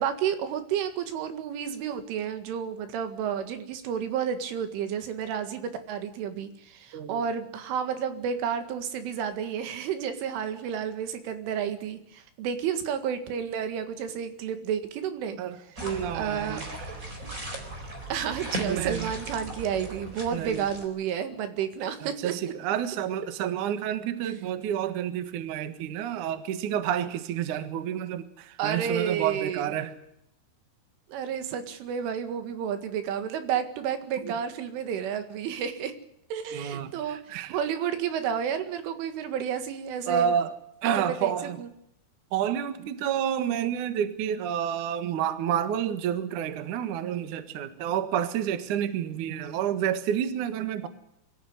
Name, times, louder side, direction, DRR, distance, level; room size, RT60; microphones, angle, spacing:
voice 1, 0.0-15.4 16.1-16.6 18.1-22.3 28.6-29.7 31.1-35.9 36.3-40.3 41.0-41.3 41.6-41.7, right 8 dB, 80° right, 9 dB, 4.4 m, -31 dB
voice 2, 6.9-7.2 15.4-16.7 18.7-19.1 20.3-20.7 22.0-29.9 34.2-34.4 36.5-37.6 40.1-40.5 40.8-41.6 42.3-50.9, right 9 dB, 60° right, 11 dB, 2.2 m, -29 dB
sound 1, 15.8-20.9, right 2 dB, 20° right, 3.8 m, -37 dB
23.5 x 14.5 x 9.5 m, 0.76 s
omnidirectional pair, 5.5 m